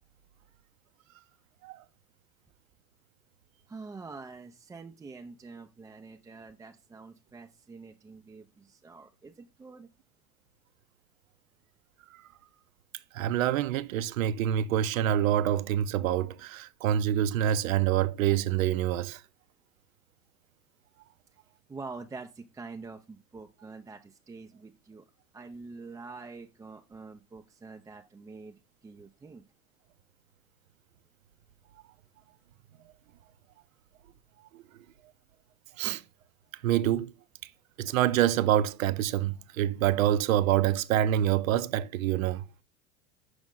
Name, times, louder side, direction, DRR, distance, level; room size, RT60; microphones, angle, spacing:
voice 1, 3.7-9.9 21.7-29.4, right 4 dB, 10° right, 0.3 m, -46 dB
voice 2, 13.1-19.2 34.5-34.6 35.8-36.0 36.6-37.1 37.8-42.4, right 11 dB, 75° right, 0.6 m, -26 dB
6.3 x 5.2 x 3.6 m
hypercardioid pair, 85°, 41 cm